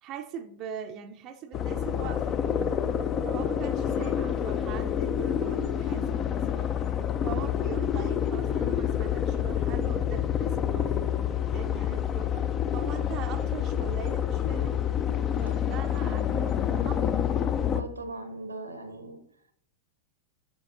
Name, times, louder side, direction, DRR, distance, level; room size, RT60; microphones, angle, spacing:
voice 1, 0.0-2.4 3.2-6.7 7.2-12.5 12.7-14.8 15.4-17.3, right 7 dB, 35° right, 5 dB, 0.6 m, -41 dB
sound 1, 1.5-17.8, left 9 dB, 30° left, 0.5 m, -28 dB
voice 2, 17.7-19.2, right 2 dB, 80° right, 10 dB, 0.9 m, -39 dB
9.8 x 7.1 x 2.6 m, 0.67 s
figure-of-eight pair, 90°, 0 cm